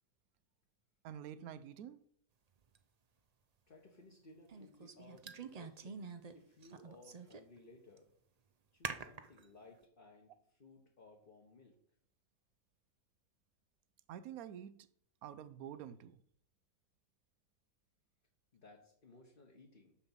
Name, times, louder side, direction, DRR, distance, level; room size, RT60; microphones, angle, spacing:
voice 1, 1.0-2.0 14.1-14.7 15.2-16.2, right 9 dB, 85° right, 1.1 m, -48 dB
sound 1, 2.7-2.8 4.5-6.3 6.6-7.6 8.0-8.1 8.8-9.4, right 5 dB, 45° right, 0.5 m, -46 dB
voice 2, 3.7-6.0 6.3-8.1 8.7-11.8 18.5-20.1, left 2 dB, 40° left, 1.4 m, -60 dB
7.0 x 5.4 x 7.3 m
omnidirectional pair, 1.5 m